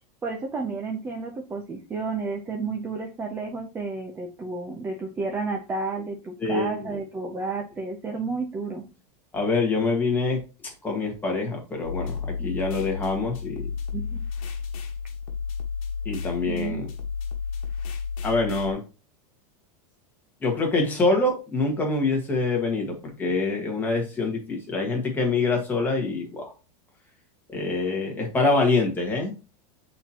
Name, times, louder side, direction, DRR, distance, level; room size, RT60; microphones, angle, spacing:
voice 1, 0.2-8.8 12.4-12.5 13.9-14.2 16.5-16.9 27.9-28.0, right 4 dB, 10° right, 3 dB, 0.5 m, -31 dB
voice 2, 6.4-6.9 9.3-10.4 10.8-13.7 16.0-16.9 18.2-18.8 20.4-26.5 27.5-29.3, left 3 dB, 10° left, 0 dB, 1.4 m, -25 dB
sound 1, 11.8-18.7, left 5 dB, 55° left, 1.4 m, -32 dB
8.0 x 4.2 x 2.8 m, 0.31 s
supercardioid pair, 175°, 20 cm